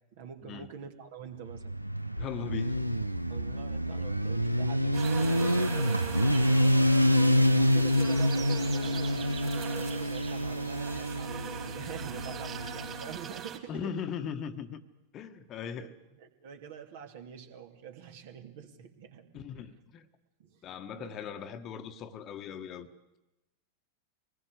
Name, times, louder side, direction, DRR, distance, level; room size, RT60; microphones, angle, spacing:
voice 1, 0.1-1.8 3.3-6.0 7.4-13.9 15.8-15.9 16.2-19.5 20.4-20.6 20.9-21.1, right 8 dB, 55° right, 2.7 m, -45 dB
Motorcycle, 1.5-13.2, equal, 85° right, 0.8 m, -27 dB
voice 2, 2.2-2.9 6.4-6.8 13.7-14.8 15.1-15.9 19.3-20.1 20.6-22.9, left 7 dB, 30° left, 1.4 m, -39 dB
sound 1, 4.9-13.6, right 8 dB, 30° right, 3.8 m, -42 dB
24.5 x 20.0 x 8.1 m
figure-of-eight pair, 90°, 0 cm